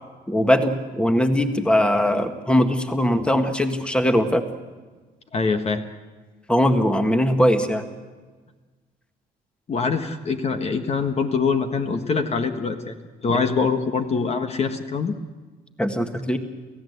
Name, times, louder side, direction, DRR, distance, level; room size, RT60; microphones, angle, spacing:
voice 1, 0.3-4.4 6.5-7.8 13.3-13.4 15.8-16.4, equal, 5° left, 6 dB, 1.7 m, -20 dB
voice 2, 5.3-5.8 9.7-13.0 13.2-15.1, left 5 dB, 40° left, 6 dB, 1.5 m, -24 dB
29.0 x 15.5 x 8.2 m, 1.4 s
cardioid pair, 110°, 17 cm